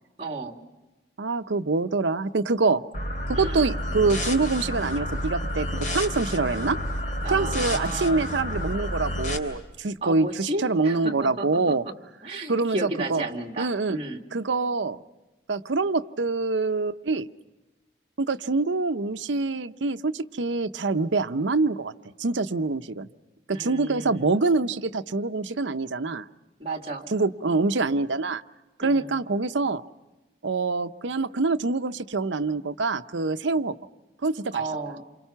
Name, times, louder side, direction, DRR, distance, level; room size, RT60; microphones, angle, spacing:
voice 1, 0.2-0.5 3.3-3.7 7.2-8.3 10.0-11.9 12.2-14.2 23.5-24.3 26.6-27.1 28.8-29.1 34.5-35.0, right 2 dB, 35° right, 2 dB, 2.3 m, -33 dB
voice 2, 1.2-2.8 3.3-5.7 5.9-6.8 7.3-11.8 12.5-13.2 13.6-14.0 14.3-15.0 15.5-17.3 18.2-21.9 22.2-23.1 23.5-26.2 27.1-28.4 28.8-29.8 30.4-33.7 34.2-34.6, right 3 dB, 90° right, 10 dB, 0.7 m, -25 dB
sound 1, 2.9-9.4, left 1 dB, 45° left, 3.2 m, -30 dB
28.5 x 25.5 x 5.7 m, 1.1 s
head